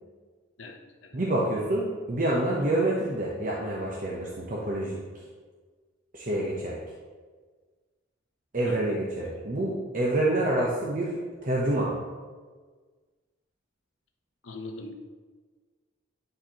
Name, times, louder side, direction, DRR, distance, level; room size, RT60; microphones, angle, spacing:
voice 1, 0.6-1.2 8.6-9.0 14.4-14.9, left 2 dB, 85° left, 4 dB, 0.8 m, -42 dB
voice 2, 1.1-5.0 6.1-6.8 8.5-11.2 11.4-11.9, right 1 dB, 45° right, -4 dB, 0.9 m, -27 dB
11.0 x 4.4 x 2.9 m, 1.4 s
head